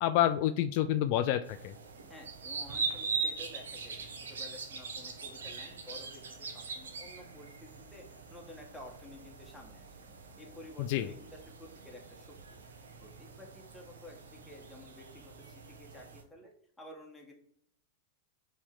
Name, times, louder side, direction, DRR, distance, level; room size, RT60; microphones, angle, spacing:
voice 1, 0.0-1.8 10.8-11.1, left 12 dB, 55° left, 10 dB, 0.3 m, -28 dB
sound 1, 1.4-16.2, right 4 dB, 85° right, 0.8 m, -42 dB
voice 2, 2.1-12.3 12.7-17.3, left 1 dB, 5° left, -1 dB, 1.4 m, -52 dB
4.3 x 3.2 x 3.8 m, 0.65 s
hypercardioid pair, 110°, 0 cm